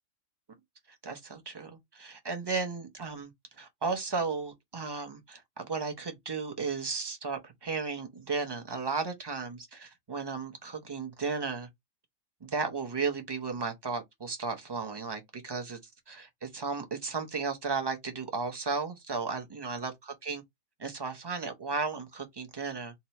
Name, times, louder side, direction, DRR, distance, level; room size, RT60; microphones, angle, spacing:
voice 1, 1.0-3.3 3.6-11.7 12.4-15.8 16.1-20.4 20.8-22.9, right 4 dB, 25° right, 0.6 m, -34 dB
2.9 x 2.6 x 4.3 m
omnidirectional pair, 1.5 m